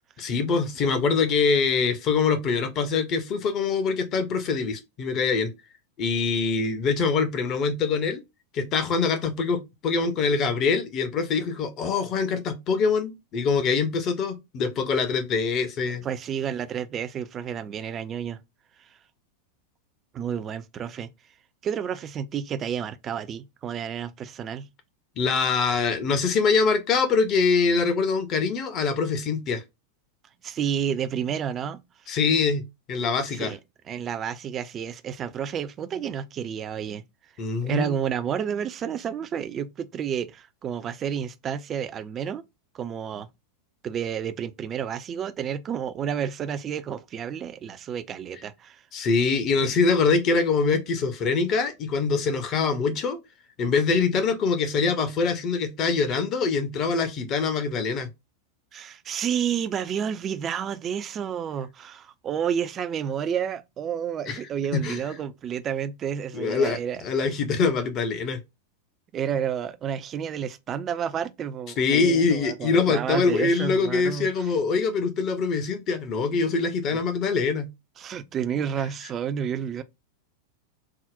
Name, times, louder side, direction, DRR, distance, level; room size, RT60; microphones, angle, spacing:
voice 1, 0.2-5.5 6.0-8.2 8.5-16.0 25.2-29.6 32.1-32.6 32.9-33.5 37.4-37.9 48.9-53.2 53.6-58.1 64.3-64.4 64.7-65.0 66.3-68.4 71.8-77.7, left 4 dB, 35° left, 0.6 m, -24 dB
voice 2, 16.0-18.4 20.1-21.1 21.6-24.7 30.4-32.2 33.3-33.6 33.9-37.0 37.6-42.4 42.7-43.3 43.8-48.8 58.7-67.0 69.1-74.5 76.9-77.0 78.0-79.8, right 8 dB, 25° right, 0.3 m, -30 dB
3.6 x 2.0 x 2.5 m
figure-of-eight pair, 90°, 0 cm